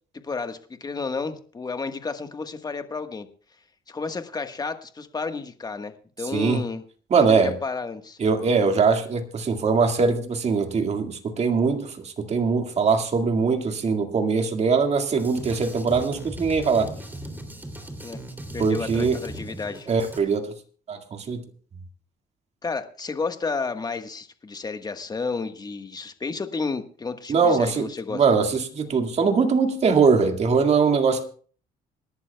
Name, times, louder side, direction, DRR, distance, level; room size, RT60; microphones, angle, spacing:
voice 1, 0.2-3.3 3.9-6.8 7.1-8.2 18.0-18.2 18.5-19.9 22.6-28.2, left 4 dB, 25° left, 1.4 m, -31 dB
voice 2, 6.3-6.6 7.1-7.5 8.2-16.9 18.6-19.2 19.9-20.5 20.9-21.4 27.3-31.2, right 5 dB, 40° right, 2.0 m, -22 dB
Drum kit, 15.2-20.2, right 1 dB, 10° right, 2.9 m, -38 dB
26.5 x 11.5 x 2.3 m
cardioid pair, 110°, 17 cm